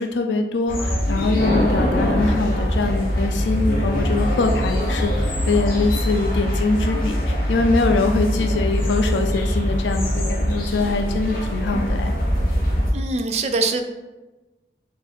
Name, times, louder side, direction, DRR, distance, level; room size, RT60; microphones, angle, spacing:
voice 1, 0.0-12.2, left 3 dB, 90° left, 5 dB, 0.4 m, -23 dB
sound 1, 0.7-12.9, equal, 50° left, 1.0 m, -22 dB
voice 2, 12.9-13.8, right 3 dB, 40° right, 7 dB, 0.4 m, -23 dB
4.7 x 2.5 x 4.2 m, 1.1 s
head